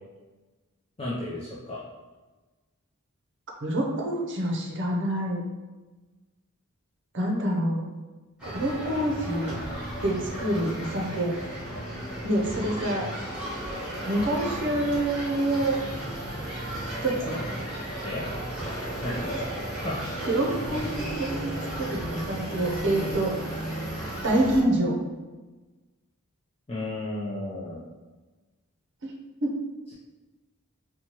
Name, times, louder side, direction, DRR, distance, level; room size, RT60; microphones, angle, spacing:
voice 1, 1.0-1.8 18.0-18.3 19.0-19.4 19.8-20.0 26.7-27.8, left 1 dB, 25° left, -7 dB, 0.5 m, -33 dB
voice 2, 3.6-5.4 7.1-7.9 8.4-9.6 10.0-11.3 12.2-13.1 14.1-15.8 17.0-17.4 19.3-19.4 20.2-23.3 24.2-25.0 29.0-29.1 29.4-29.6, right 1 dB, 55° right, 0 dB, 0.7 m, -27 dB
sound 1, 8.4-24.6, right 1 dB, 5° right, 1.2 m, -34 dB
4.5 x 2.3 x 2.9 m, 1.2 s
head